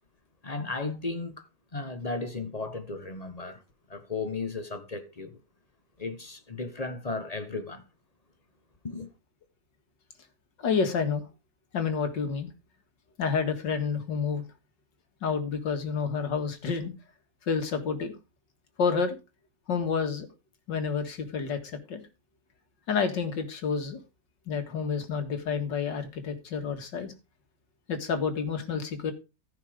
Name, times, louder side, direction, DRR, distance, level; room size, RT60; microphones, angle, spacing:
voice 1, 0.4-3.6 3.9-5.4 6.0-7.8 8.8-9.1, left 3 dB, 25° left, 1.0 m, -35 dB
voice 2, 10.6-11.2 11.7-12.5 13.2-14.4 15.2-16.9 17.5-18.1 18.8-19.2 19.7-20.3 20.7-22.0 22.9-24.0 24.5-27.1 27.9-29.1, left 5 dB, 80° left, 2.5 m, -29 dB
14.5 x 5.8 x 5.0 m
omnidirectional pair, 1.9 m